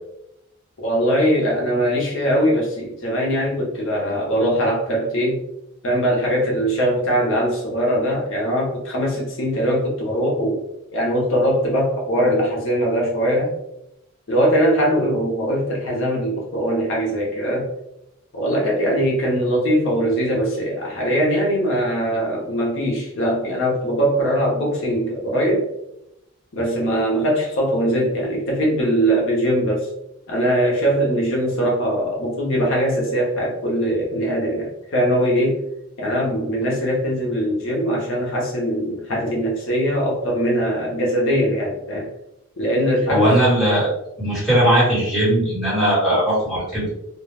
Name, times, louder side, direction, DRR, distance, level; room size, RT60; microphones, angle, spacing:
voice 1, 0.8-5.4 5.8-10.6 10.9-13.5 14.3-17.7 18.3-25.7 26.5-29.9 30.3-35.6 36.0-42.1 42.6-43.3, equal, 65° left, -2 dB, 0.7 m, -21 dB
voice 2, 43.1-43.9 44.2-46.9, right 1 dB, ahead, -8 dB, 1.3 m, -18 dB
2.3 x 2.2 x 3.2 m, 0.83 s
head